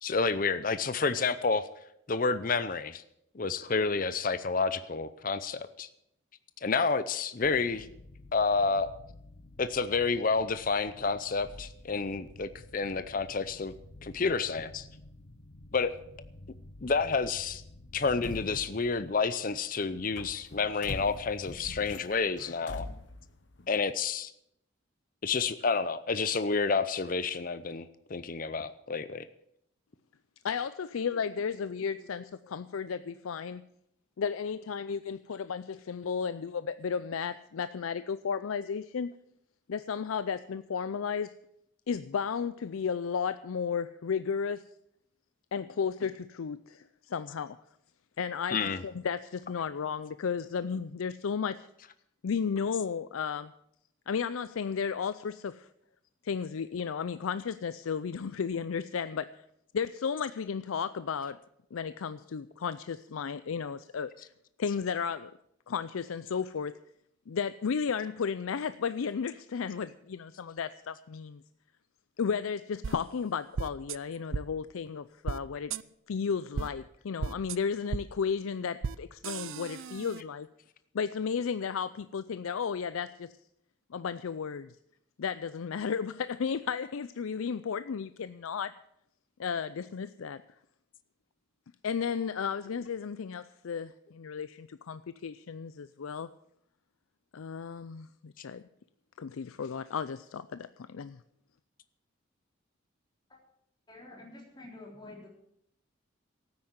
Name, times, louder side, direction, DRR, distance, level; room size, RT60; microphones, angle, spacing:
voice 1, 0.0-1.7 2.1-3.0 3.3-5.9 6.6-7.9 8.3-8.9 9.6-13.7 14.0-14.9 15.7-15.9 16.8-17.6 17.9-22.9 23.7-24.3 25.2-29.3 48.5-48.8, left 4 dB, 40° left, 13 dB, 0.6 m, -29 dB
sound 1, 7.4-19.5 19.9-23.8, left 2 dB, 60° left, 1.0 m, -47 dB
voice 2, 30.4-33.6 34.2-39.1 39.7-41.4 41.9-44.7 45.5-47.6 48.2-48.6 48.8-51.7 52.2-53.5 54.1-55.7 56.2-59.4 59.7-61.4 61.7-64.3 64.6-65.3 65.7-66.8 67.3-71.4 72.2-75.7 76.1-80.5 80.9-83.3 83.9-84.8 85.2-88.7 89.4-90.4 91.8-96.3 97.3-98.6 99.2-101.2, left 6 dB, 85° left, 14 dB, 0.4 m, -34 dB
sound 2, 72.8-72.9 73.6-74.0 74.3-74.4 75.3-75.4 75.7-75.8 76.6-76.7 77.2-77.6 77.9-78.0 78.8-79.0 79.2-80.2, right 5 dB, 75° right, 0.5 m, -34 dB
voice 3, 103.9-105.3, left 2 dB, 20° left, -1 dB, 3.6 m, -48 dB
13.0 x 9.6 x 8.0 m, 0.76 s
head